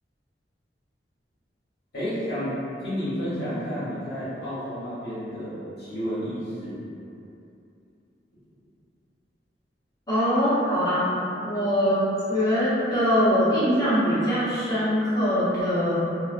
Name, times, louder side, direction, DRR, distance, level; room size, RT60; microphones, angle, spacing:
voice 1, 1.9-2.5 2.8-6.8, equal, 60° left, -12 dB, 0.9 m, -31 dB
voice 2, 10.1-11.2 11.4-12.0 12.3-16.0, equal, 20° left, -13 dB, 0.8 m, -22 dB
2.3 x 2.2 x 2.4 m, 2.7 s
head